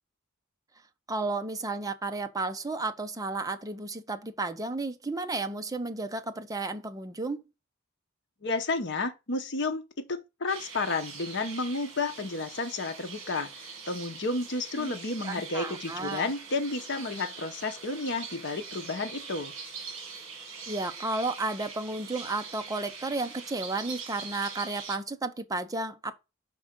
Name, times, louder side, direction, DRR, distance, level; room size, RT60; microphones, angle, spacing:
voice 1, 1.1-7.4 14.7-14.9 15.2-16.3 20.7-26.2, right 3 dB, 15° right, 0.6 m, -33 dB
voice 2, 8.4-9.8 10.1-13.5 13.9-19.5, left 3 dB, 60° left, 0.9 m, -31 dB
sound 1, 10.5-25.0, right 5 dB, 65° right, 1.7 m, -43 dB
5.3 x 3.6 x 5.0 m
head